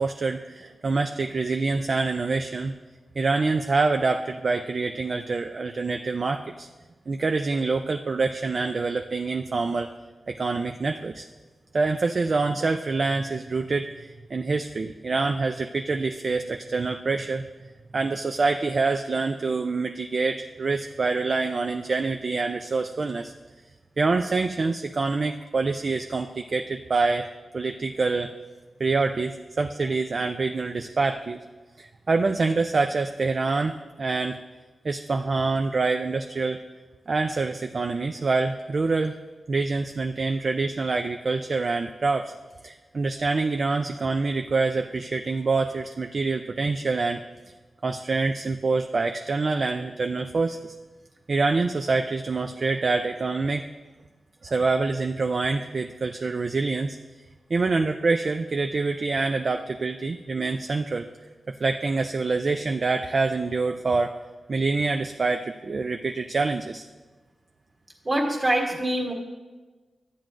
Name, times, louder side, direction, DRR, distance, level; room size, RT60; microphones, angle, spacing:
voice 1, 0.0-2.7 3.2-6.7 7.1-9.9 10.3-11.3 11.7-17.4 17.9-23.3 24.0-27.3 27.5-28.3 28.8-31.4 31.8-34.4 34.8-36.6 37.1-39.2 39.5-42.3 42.6-47.2 47.8-50.7 51.3-53.7 54.4-57.0 57.5-61.1 61.6-64.1 64.5-66.8, right 3 dB, 40° right, 6 dB, 0.3 m, -26 dB
voice 2, 68.0-69.1, right 1 dB, 25° right, -2 dB, 1.6 m, -24 dB
12.5 x 9.0 x 2.5 m, 1.3 s
wide cardioid pair, 135°, 0 cm